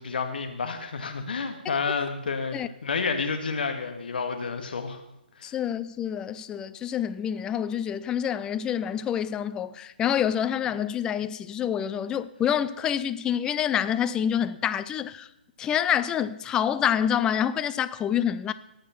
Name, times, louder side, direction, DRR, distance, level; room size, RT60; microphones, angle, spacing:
voice 1, 0.0-5.0 5.4-5.5, left 5 dB, 60° left, 1.8 m, -30 dB
voice 2, 5.4-15.3 15.6-18.5, left 9 dB, 15° left, 0.4 m, -27 dB
18.0 x 6.6 x 5.8 m
figure-of-eight pair, 135°, 6 cm